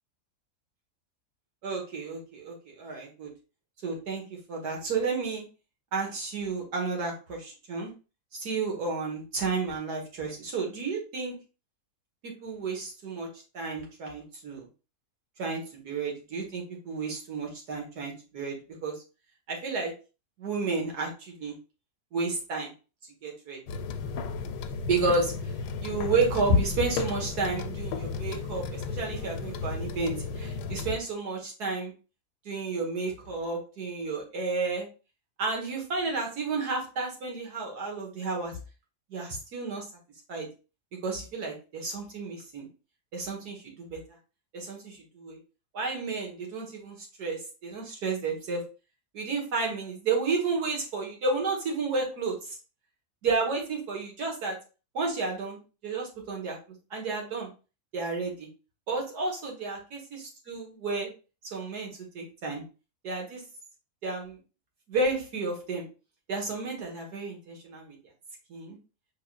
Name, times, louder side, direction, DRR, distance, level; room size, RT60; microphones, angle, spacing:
voice 1, 1.6-3.3 3.8-4.2 4.5-5.4 5.9-7.9 8.3-11.4 12.2-13.3 13.5-14.7 15.4-18.6 18.8-18.9 19.5-19.9 20.4-21.5 22.1-22.7 23.2-23.6 24.9-25.3 25.8-31.9 32.5-34.9 35.4-38.6 39.1-39.9 40.3-40.5 41.0-42.7 43.1-44.0 44.5-45.4 45.7-48.6 49.1-52.6 53.2-54.6 54.9-56.6 56.9-57.5 57.9-58.5 58.9-61.1 61.5-62.6 63.0-63.4 64.0-64.4 64.9-65.9 66.3-68.0 68.5-68.8, right 3 dB, 85° right, 0 dB, 2.0 m, -31 dB
sound 1, 23.7-31.0, left 5 dB, 85° left, 1.1 m, -34 dB
5.5 x 3.7 x 2.4 m, 0.33 s
omnidirectional pair, 1.6 m